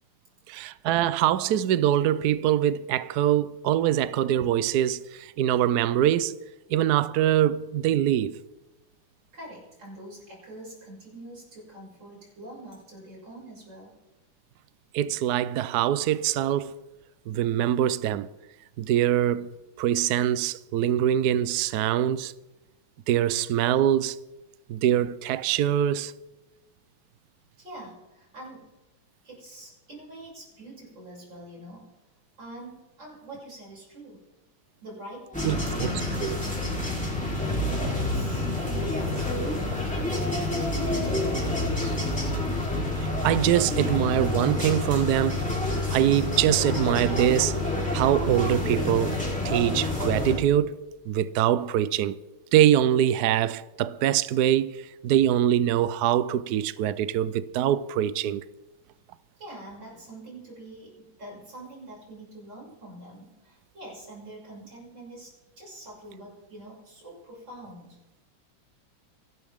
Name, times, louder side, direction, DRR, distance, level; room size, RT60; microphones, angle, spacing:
voice 1, 0.5-6.4 6.7-8.3 14.9-16.7 17.3-18.3 18.8-22.3 23.1-24.2 24.7-26.1 35.4-35.9 36.2-36.4 43.0-45.4 45.9-47.6 47.9-49.2 49.4-52.2 52.5-58.4, right 11 dB, 80° right, 0.8 m, -24 dB
voice 2, 9.3-13.9 27.6-28.7 29.2-31.9 32.4-34.2 34.8-37.1 37.6-42.0 59.4-68.0, right 1 dB, 55° right, 7.4 m, -44 dB
sound 1, 35.3-50.4, left 2 dB, 5° left, 3.9 m, -28 dB
27.0 x 12.5 x 3.6 m
omnidirectional pair, 2.4 m